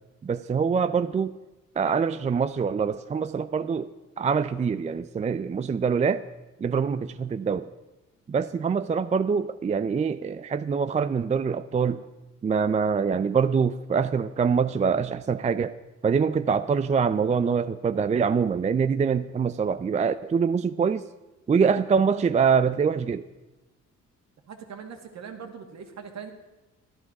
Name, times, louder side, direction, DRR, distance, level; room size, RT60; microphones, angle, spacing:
voice 1, 0.2-1.3 1.8-6.2 6.6-7.7 8.3-12.0 12.4-15.8 16.0-21.1 21.5-23.3, right 6 dB, 25° right, 12 dB, 0.4 m, -24 dB
voice 2, 24.5-26.3, right 6 dB, 60° right, 5 dB, 2.0 m, -41 dB
13.0 x 11.5 x 6.0 m, 1.1 s
cardioid pair, 90°, 30 cm